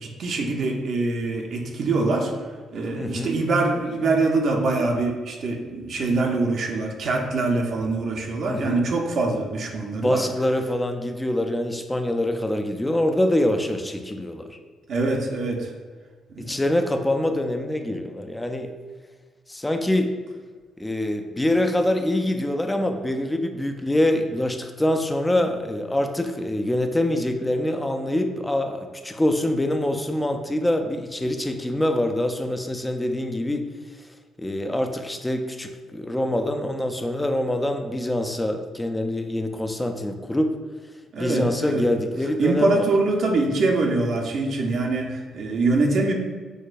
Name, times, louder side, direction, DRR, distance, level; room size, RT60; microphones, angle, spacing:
voice 1, 0.0-2.3 2.7-10.2 14.9-15.7 16.3-16.6 41.1-41.9 42.4-46.1, right 3 dB, 60° right, 1 dB, 0.6 m, -24 dB
voice 2, 3.0-3.3 8.5-8.8 9.9-14.6 16.4-18.7 19.5-20.1 20.8-33.7 34.4-40.5 41.2-42.9, left 1 dB, 10° left, 6 dB, 0.4 m, -25 dB
6.2 x 2.2 x 2.5 m, 1.4 s
cardioid pair, 90°, 0 cm